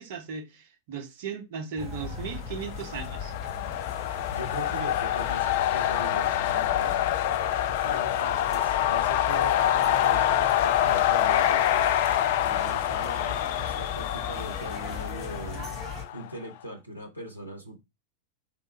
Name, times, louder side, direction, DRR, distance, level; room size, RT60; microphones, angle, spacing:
voice 1, 0.0-3.3, right 6 dB, 50° right, 0.9 m, -37 dB
sound 1, 1.8-16.0, left 5 dB, 15° left, 2.5 m, -38 dB
sound 2, 2.5-16.3, left 12 dB, 50° left, 0.3 m, -26 dB
voice 2, 4.3-7.0 7.8-15.7 16.1-17.8, right 1 dB, 90° right, 0.8 m, -40 dB
3.6 x 3.3 x 3.0 m
figure-of-eight pair, 90°, 0 cm